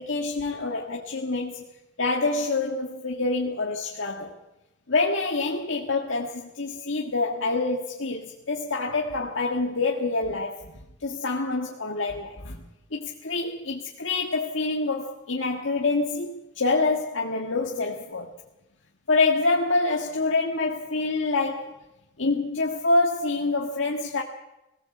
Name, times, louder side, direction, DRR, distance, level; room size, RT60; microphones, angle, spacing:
voice 1, 0.0-4.3 4.9-12.6 12.9-18.3 19.1-21.8 22.2-24.2, left 3 dB, 75° left, 1.9 m, -26 dB
21.0 x 17.5 x 7.9 m
head